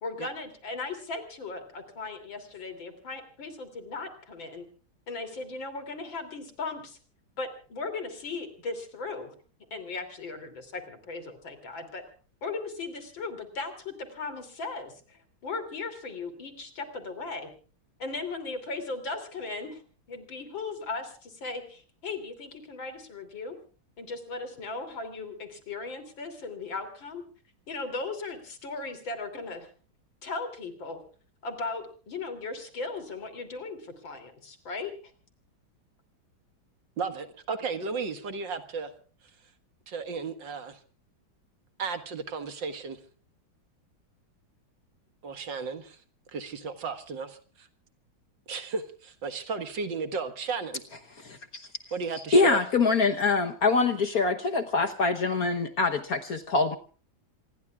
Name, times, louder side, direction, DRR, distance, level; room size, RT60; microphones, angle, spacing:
voice 1, 0.0-4.6 5.1-7.0 7.4-9.3 9.7-12.0 12.4-17.5 18.0-19.8 20.1-23.6 24.0-27.2 27.7-29.7 30.2-31.0 31.4-34.9, left 3 dB, 75° left, 8 dB, 3.8 m, -37 dB
voice 2, 37.0-38.9 39.9-40.8 41.8-43.0 45.2-46.0 46.3-47.7 48.5-50.8 51.9-52.6, right 5 dB, 65° right, 9 dB, 2.3 m, -34 dB
voice 3, 51.2-51.7 52.3-56.8, left 3 dB, 55° left, 7 dB, 1.4 m, -24 dB
27.0 x 21.0 x 2.4 m, 0.39 s
omnidirectional pair, 2.1 m